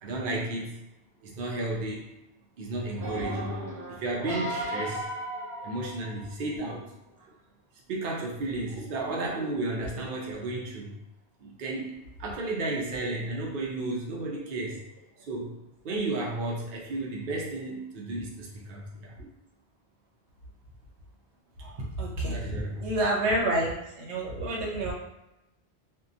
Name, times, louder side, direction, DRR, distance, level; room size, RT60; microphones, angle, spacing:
voice 1, 0.0-0.8 1.2-2.1 2.6-5.1 5.4-6.8 7.9-11.0 11.4-11.9 12.2-14.8 15.3-15.6 15.8-19.1 22.3-22.9, right 2 dB, 60° right, -2 dB, 0.7 m, -33 dB
sound 1, 2.9-6.4 7.1-7.2, equal, 15° left, 0.8 m, -36 dB
voice 2, 22.0-22.3 22.8-24.9, right 1 dB, 80° right, -2 dB, 0.9 m, -28 dB
2.7 x 2.2 x 2.4 m, 0.90 s
omnidirectional pair, 1.1 m